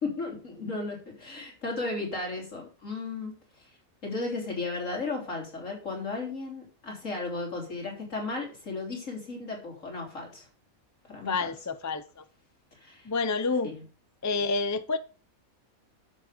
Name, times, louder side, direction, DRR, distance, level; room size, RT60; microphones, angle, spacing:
voice 1, 0.0-3.7 4.0-10.5 11.1-11.5 12.8-13.1 13.6-13.8, left 3 dB, 60° left, 3.7 m, -35 dB
voice 2, 11.3-12.2 13.0-13.7 14.2-15.0, left 4 dB, 25° left, 0.3 m, -28 dB
11.0 x 6.8 x 5.1 m
omnidirectional pair, 1.5 m